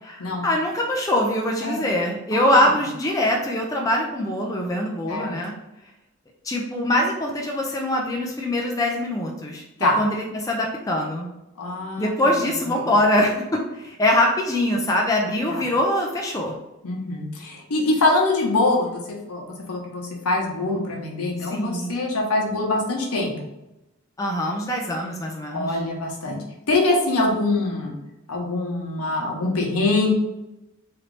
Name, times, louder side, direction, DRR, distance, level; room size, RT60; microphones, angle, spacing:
voice 1, 0.0-5.5 6.4-11.3 12.0-16.6 21.5-21.9 24.2-25.8, left 1 dB, 15° left, 0 dB, 0.3 m, -23 dB
voice 2, 2.3-2.7 5.1-5.4 9.8-10.0 11.6-12.1 12.5-12.9 15.5-15.7 16.8-19.0 19.3-23.5 25.5-26.4 26.7-27.9 28.3-30.1, left 2 dB, 85° left, 0 dB, 0.8 m, -24 dB
3.2 x 2.5 x 3.1 m, 0.93 s
head